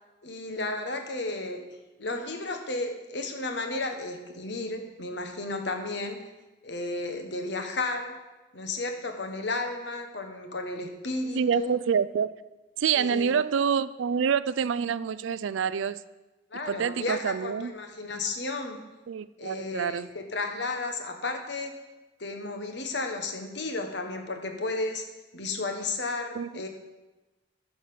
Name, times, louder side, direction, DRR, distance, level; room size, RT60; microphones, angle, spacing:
voice 1, 0.2-1.6 2.0-6.2 6.6-8.2 8.5-11.7 12.9-13.3 16.5-18.8 19.4-21.8 22.2-25.0 25.3-26.7, left 2 dB, 65° left, 5 dB, 1.3 m, -33 dB
voice 2, 11.4-12.3 12.8-16.0 16.7-17.7 19.1-20.1 26.4-26.5, right 7 dB, 80° right, 17 dB, 0.4 m, -27 dB
10.5 x 5.8 x 6.9 m, 1.1 s
head